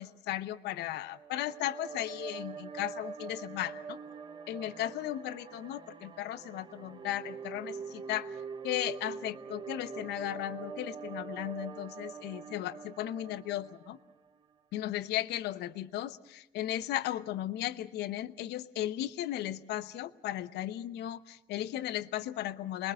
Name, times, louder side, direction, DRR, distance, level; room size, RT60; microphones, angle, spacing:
voice 1, 0.0-4.0 4.5-8.3 8.6-14.0 14.7-22.9, left 13 dB, 80° left, 13 dB, 0.9 m, -36 dB
sound 1, 1.1-14.4, right 5 dB, 25° right, 1.0 m, -44 dB
28.5 x 21.0 x 6.5 m, 0.88 s
cardioid pair, 110°, 17 cm